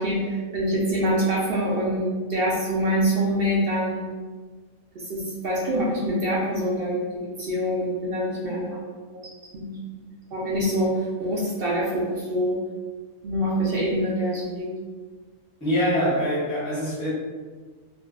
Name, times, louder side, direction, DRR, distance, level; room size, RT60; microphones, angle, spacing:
voice 1, 0.0-4.0 5.0-9.2 9.5-10.0 10.3-12.6 13.2-14.7, equal, 70° right, -5 dB, 0.5 m, -25 dB
voice 2, 15.6-17.1, equal, 10° right, -10 dB, 0.4 m, -24 dB
2.5 x 2.2 x 2.3 m, 1.5 s
omnidirectional pair, 1.4 m